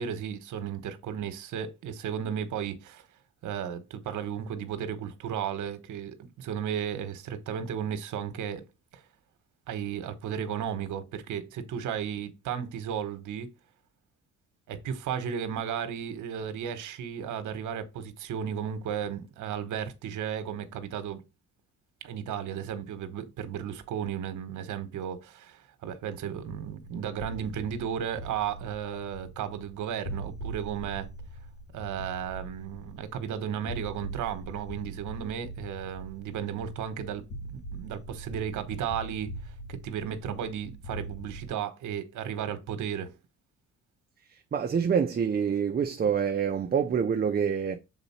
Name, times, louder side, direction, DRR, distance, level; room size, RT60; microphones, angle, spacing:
voice 1, 0.0-3.0 3.4-8.6 8.9-9.0 9.7-13.5 14.7-21.2 22.0-31.1 31.7-37.2 37.5-39.3 39.7-43.1, right 8 dB, 80° right, 1.2 m, -34 dB
sound 1, 26.4-41.5, right 2 dB, 70° left, 2.1 m, -42 dB
voice 2, 44.3-47.8, right 7 dB, 30° right, 0.6 m, -26 dB
6.8 x 3.9 x 4.3 m
cardioid pair, 90°, 30 cm